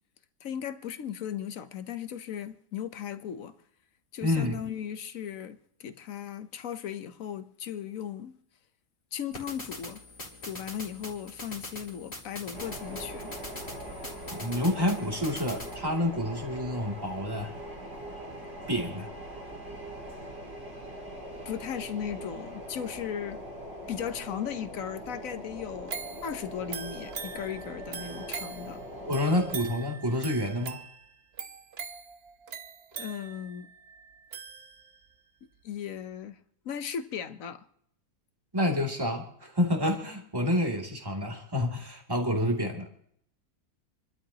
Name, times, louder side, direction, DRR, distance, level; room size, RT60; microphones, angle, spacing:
voice 1, 0.4-3.6 4.1-8.4 9.1-10.0 10.4-13.3 21.4-23.4 23.9-26.0 26.2-28.8 32.9-33.7 35.6-37.7, left 9 dB, 60° left, 1.2 m, -37 dB
voice 2, 4.2-4.6 14.3-17.5 18.7-19.1 29.1-30.8 38.5-42.9, left 1 dB, 15° right, 2.6 m, -28 dB
sound 1, 9.3-15.8, left 1 dB, 30° left, 3.5 m, -43 dB
sound 2, 12.5-29.6, equal, 65° right, 4.8 m, -42 dB
sound 3, 25.9-35.1 35.6-35.7, right 6 dB, 45° right, 1.0 m, -42 dB
28.5 x 12.5 x 2.9 m
omnidirectional pair, 1.7 m